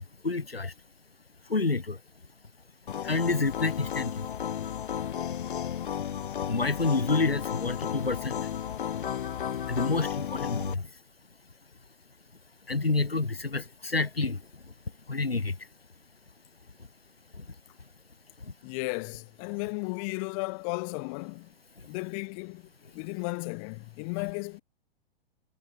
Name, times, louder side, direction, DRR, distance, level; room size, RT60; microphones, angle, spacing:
voice 1, 0.2-0.7 1.5-2.0 3.0-4.1 6.5-8.4 9.7-10.8 12.7-14.4 15.1-15.5, left 3 dB, 85° left, 1.4 m, -28 dB
sound 1, 2.9-10.7, left 9 dB, 60° left, 1.2 m, -33 dB
voice 2, 18.6-21.5 21.9-24.6, left 33 dB, 35° left, 2.6 m, -35 dB
figure-of-eight pair, 110°, 29 cm